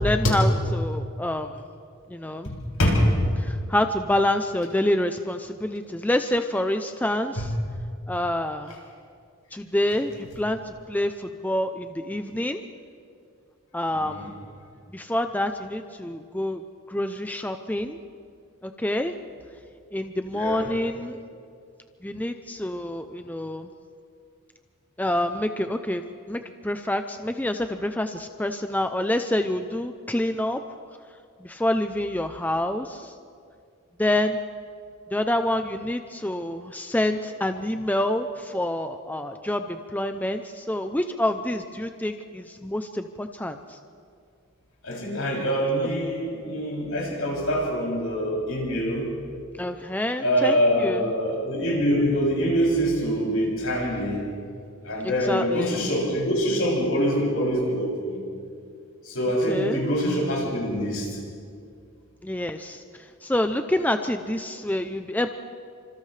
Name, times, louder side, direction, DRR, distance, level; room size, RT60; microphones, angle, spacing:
voice 1, 0.0-1.6 2.1-2.5 3.4-7.5 8.1-8.8 9.5-10.6 10.9-12.6 13.7-14.3 14.9-18.0 18.6-19.1 19.9-21.2 22.0-23.7 25.0-30.6 31.4-33.1 34.0-34.4 35.1-43.8 45.8-45.9 49.6-51.1 55.0-55.8 59.5-59.8 62.2-65.3, left 1 dB, 10° left, 7 dB, 0.5 m, -27 dB
voice 2, 20.3-20.7 44.8-49.1 50.2-54.2 54.8-58.2 59.0-61.1, equal, 75° left, -3 dB, 7.2 m, -24 dB
30.0 x 26.0 x 3.3 m, 2.3 s
head